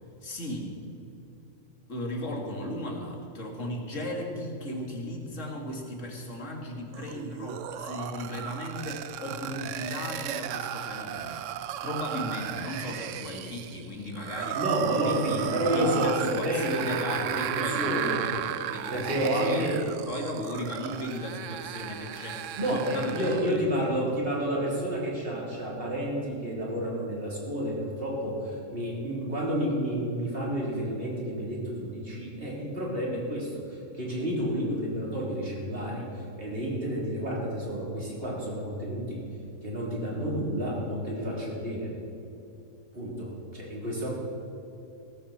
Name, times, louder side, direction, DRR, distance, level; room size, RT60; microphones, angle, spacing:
voice 1, 0.2-0.8 1.9-14.6 15.0-15.4 15.7-19.8 20.1-24.0, left 1 dB, 65° left, 1 dB, 2.5 m, -36 dB
sound 1, 6.9-23.6, right 10 dB, 70° right, 0.9 m, -34 dB
voice 2, 14.5-18.3 18.9-19.8 22.6-39.2 39.6-41.9 42.9-44.1, equal, 45° right, -4 dB, 3.8 m, -30 dB
17.0 x 13.5 x 4.4 m, 2.9 s
omnidirectional pair, 1.4 m